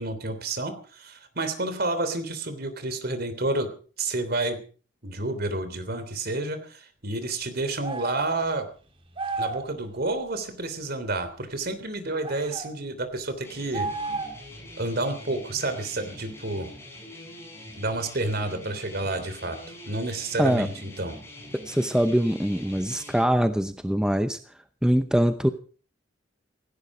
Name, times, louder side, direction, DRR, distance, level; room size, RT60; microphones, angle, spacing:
voice 1, 0.0-3.7 4.0-4.6 5.0-8.7 9.4-13.9 14.8-16.7 17.8-21.2, right 2 dB, 55° right, 10 dB, 3.3 m, -30 dB
sound 1, 7.8-8.3 9.1-9.7 12.2-12.7 13.7-14.5, right 3 dB, 30° right, 2.4 m, -32 dB
sound 2, 13.4-23.2, left 1 dB, 15° left, 7.5 m, -44 dB
voice 2, 21.5-24.4 24.8-25.5, equal, 5° right, 9 dB, 0.8 m, -23 dB
17.5 x 16.0 x 5.0 m, 0.42 s
head